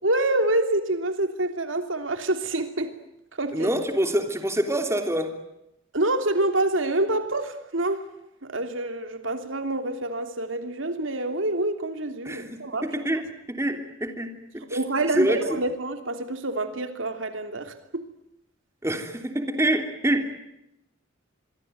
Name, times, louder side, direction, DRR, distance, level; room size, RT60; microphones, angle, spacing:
voice 1, 0.0-2.9 3.4-3.7 5.9-8.0 8.4-12.9 14.7-18.0, right 2 dB, 80° right, 3.1 m, -27 dB
voice 2, 3.5-5.3 12.2-14.8 15.1-15.4 18.8-20.3, right 1 dB, 15° right, 3.3 m, -26 dB
26.0 x 23.5 x 9.3 m
head